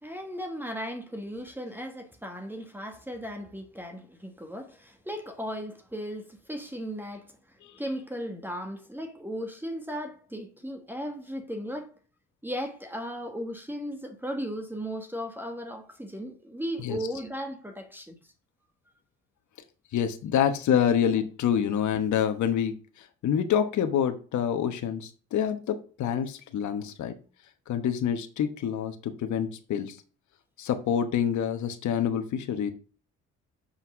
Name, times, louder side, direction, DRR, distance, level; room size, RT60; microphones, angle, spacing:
voice 1, 0.0-7.3 7.8-11.9 12.4-18.3, equal, 5° right, 1.4 m, -36 dB
voice 2, 19.9-27.1 27.7-30.0 30.6-32.7, left 8 dB, 70° left, 1.1 m, -27 dB
5.8 x 5.7 x 6.1 m
cardioid pair, 90°, 30 cm